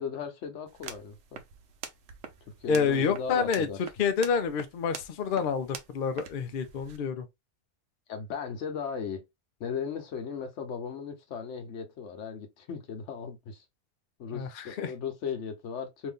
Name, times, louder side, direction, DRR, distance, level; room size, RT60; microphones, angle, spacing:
voice 1, 0.0-1.4 2.6-3.8 8.1-9.2 9.6-13.6 14.2-16.1, left 6 dB, 80° left, 1.1 m, -37 dB
sound 1, 0.7-7.0, right 7 dB, 80° right, 1.0 m, -46 dB
voice 2, 2.7-7.3 14.3-14.9, left 6 dB, 60° left, 0.6 m, -28 dB
2.7 x 2.6 x 3.5 m
omnidirectional pair, 1.2 m